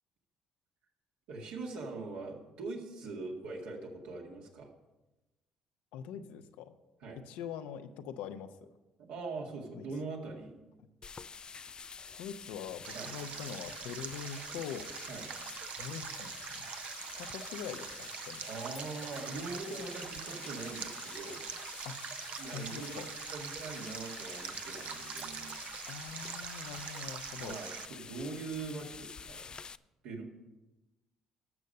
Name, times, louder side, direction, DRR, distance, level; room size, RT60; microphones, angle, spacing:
voice 1, 1.3-4.7 7.0-7.2 9.1-10.7 12.9-13.1 15.1-15.3 18.4-21.4 22.4-25.6 27.3-29.5 30.0-30.3, right 3 dB, 80° right, 0 dB, 1.9 m, -42 dB
voice 2, 5.9-6.7 7.2-8.7 9.7-9.8 12.2-14.9 15.8-16.7 17.2-18.5 21.8-22.0 22.5-23.1 25.9-27.6, left 8 dB, 80° left, 9 dB, 0.7 m, -43 dB
sound 1, 11.0-29.8, left 5 dB, 35° left, 0.3 m, -48 dB
Stream, 12.8-27.9, right 8 dB, 60° right, 0.6 m, -44 dB
sound 2, 18.7-19.3 21.8-23.0 23.4-23.5 25.2-26.1, left 1 dB, 5° left, 0.7 m, -56 dB
12.0 x 6.5 x 5.4 m, 1.1 s
supercardioid pair, 65°, 2 cm